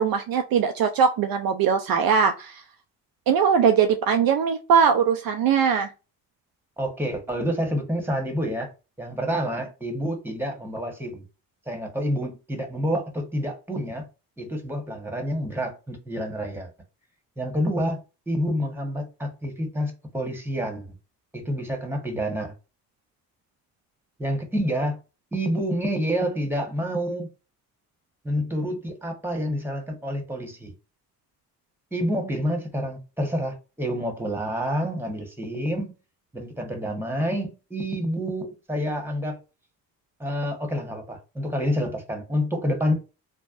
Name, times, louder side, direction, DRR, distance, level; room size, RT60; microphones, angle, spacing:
voice 1, 0.0-2.6 3.3-5.9, right 7 dB, 60° right, 0.5 m, -21 dB
voice 2, 6.8-8.7 9.0-11.2 11.7-14.0 14.4-16.7 17.4-18.0 18.3-20.9 21.3-22.5 24.2-25.0 25.3-27.3 28.2-30.7 31.9-35.9 36.3-39.4 40.2-42.9, equal, 5° right, 1.2 m, -28 dB
3.4 x 2.2 x 2.5 m
hypercardioid pair, 45°, 41 cm